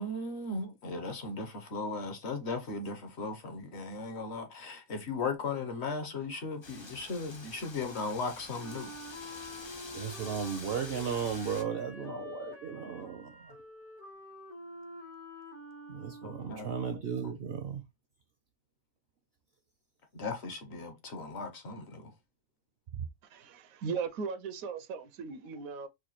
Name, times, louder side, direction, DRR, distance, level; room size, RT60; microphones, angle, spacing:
voice 1, 0.0-8.9 16.2-16.7 20.1-22.1, left 3 dB, 55° left, 1.0 m, -37 dB
Wind, 6.6-11.6, left 3 dB, 35° left, 0.4 m, -47 dB
Wind instrument woodwind instrument, 8.6-16.8, left 2 dB, 80° left, 2.5 m, -47 dB
voice 2, 9.9-13.3 15.9-17.8, right 7 dB, 60° right, 0.7 m, -35 dB
voice 3, 23.3-25.9, right 5 dB, 80° right, 1.0 m, -37 dB
4.8 x 2.2 x 2.9 m
omnidirectional pair, 1.5 m